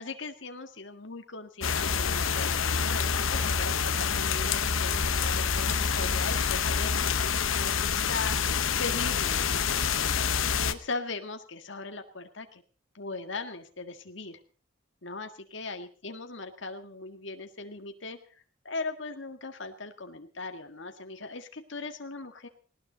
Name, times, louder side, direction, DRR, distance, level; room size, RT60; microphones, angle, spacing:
voice 1, 0.0-8.4 8.8-12.6 12.9-14.4 15.0-22.5, left 3 dB, 65° left, 5 dB, 1.8 m, -39 dB
sound 1, 1.6-10.7, left 6 dB, 85° left, 1.1 m, -27 dB
19.0 x 18.5 x 4.0 m, 0.38 s
head